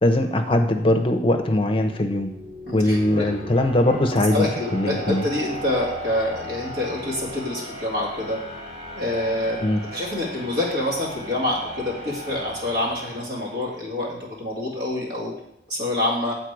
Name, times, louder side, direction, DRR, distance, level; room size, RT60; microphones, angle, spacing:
voice 1, 0.0-2.3 2.7-5.2 9.6-9.8, left 1 dB, 30° left, 6 dB, 0.6 m, -21 dB
sound 1, 1.0-13.9, equal, 35° right, 2.3 m, -37 dB
voice 2, 2.7-3.3 4.3-8.4 8.9-15.3 15.7-16.3, left 1 dB, 70° right, -3 dB, 2.1 m, -26 dB
8.1 x 4.2 x 4.7 m, 0.80 s
head